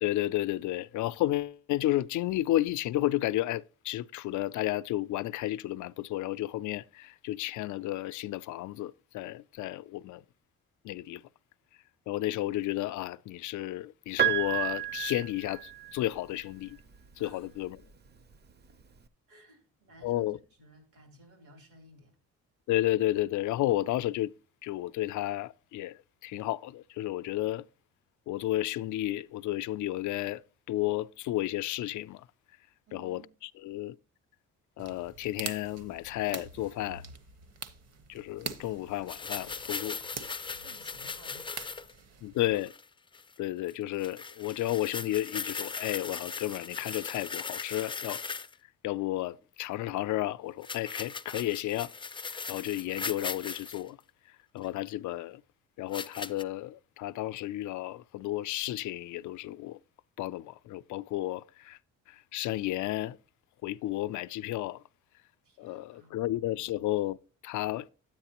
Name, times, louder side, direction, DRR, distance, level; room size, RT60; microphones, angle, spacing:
voice 1, 0.0-10.2 10.8-11.2 12.1-16.8 17.2-17.8 20.0-20.4 22.7-24.3 24.6-27.6 28.3-30.4 30.7-32.2 32.9-34.0 34.8-37.0 38.1-40.0 42.2-42.7 43.4-48.2 48.8-51.9 52.3-54.0 54.5-55.4 55.8-59.8 60.2-61.8 62.3-63.2 63.6-64.8 65.6-67.2 67.4-67.9, left 15 dB, 75° left, 0.4 m, -32 dB
Piano, 14.2-16.2 17.5-17.6, right 12 dB, 35° right, 0.6 m, -30 dB
voice 2, 19.3-22.2 32.9-33.3 40.6-41.6 42.1-42.3 65.4-66.3, right 2 dB, 85° right, 3.2 m, -57 dB
sound 1, 34.8-42.6, right 5 dB, 55° right, 1.1 m, -45 dB
sound 2, 39.1-41.9 42.4-42.8 43.1-43.3 43.7-43.8 44.0-48.5 50.6-53.8 54.6-54.7 55.9-56.4, left 5 dB, 15° left, 0.4 m, -39 dB
9.8 x 8.8 x 2.9 m
cardioid pair, 90°, 30 cm